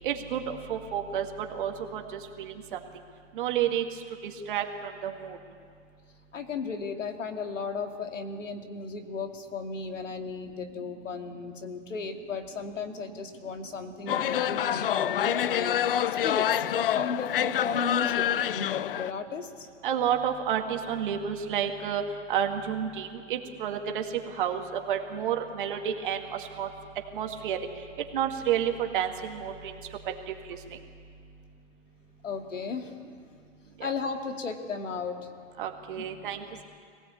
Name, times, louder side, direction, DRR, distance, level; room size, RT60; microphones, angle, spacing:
voice 1, 0.0-2.0 2.4-2.5 3.4-3.8 4.5-5.4 19.8-22.0 22.3-24.0 24.4-26.7 27.2-27.6 28.1-29.7 35.6-36.6, right 9 dB, 45° right, 4 dB, 2.1 m, -30 dB
voice 2, 6.3-19.7 32.2-33.0 33.8-35.2, left 4 dB, 90° left, 6 dB, 2.4 m, -35 dB
sound 1, 14.1-19.1, left 10 dB, 50° left, 0.5 m, -27 dB
23.5 x 17.0 x 8.7 m, 2.2 s
hypercardioid pair, 160°, 37 cm